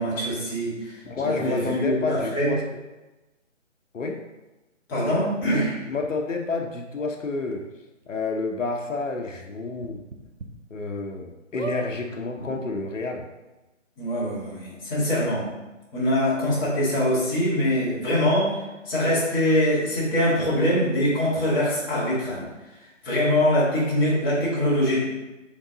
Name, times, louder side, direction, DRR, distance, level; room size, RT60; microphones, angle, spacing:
voice 1, 0.0-2.6 4.9-5.8 14.0-15.5 15.9-18.5 18.9-22.5 23.0-25.0, equal, 15° left, -8 dB, 1.9 m, -23 dB
voice 2, 1.0-2.6 3.9-4.2 5.9-7.7 8.1-10.0 10.7-13.3, left 3 dB, 80° left, 3 dB, 0.9 m, -29 dB
sound 1, 5.4-5.5 6.0-6.1 7.1-7.2 7.5-7.6 8.0-8.1 9.8-10.5 11.0-11.1 11.5-11.8 12.7-12.8 12.9-13.0, right 2 dB, 75° right, 1.2 m, -36 dB
7.8 x 3.7 x 3.9 m, 1.1 s
figure-of-eight pair, 155°, 38 cm